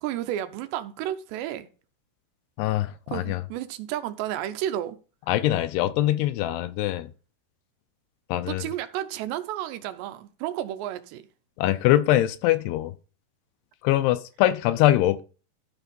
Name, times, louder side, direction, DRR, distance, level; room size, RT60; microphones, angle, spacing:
voice 1, 0.0-1.7 3.1-5.0 8.5-11.2, right 12 dB, 85° right, 3.0 m, -32 dB
voice 2, 2.6-3.4 5.3-7.1 8.3-8.6 11.6-12.9 13.8-15.2, left 14 dB, 80° left, 2.5 m, -23 dB
13.0 x 4.6 x 5.3 m
omnidirectional pair, 4.9 m